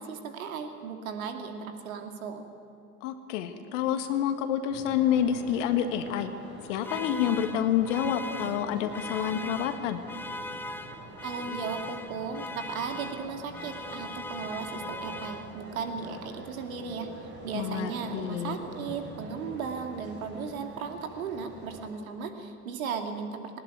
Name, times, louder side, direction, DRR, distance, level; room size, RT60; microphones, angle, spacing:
voice 1, 0.0-2.4 11.2-17.1 17.4-23.6, right 5 dB, 60° right, 5 dB, 2.7 m, -36 dB
voice 2, 3.0-6.3 6.7-10.0 17.5-18.6, left 9 dB, 50° left, 8 dB, 1.7 m, -28 dB
sound 1, 4.7-21.9, right 2 dB, 20° right, 5.6 m, -46 dB
sound 2, 6.8-15.8, left 2 dB, 5° left, 0.6 m, -40 dB
19.5 x 19.5 x 9.3 m, 2.7 s
figure-of-eight pair, 90°, 46 cm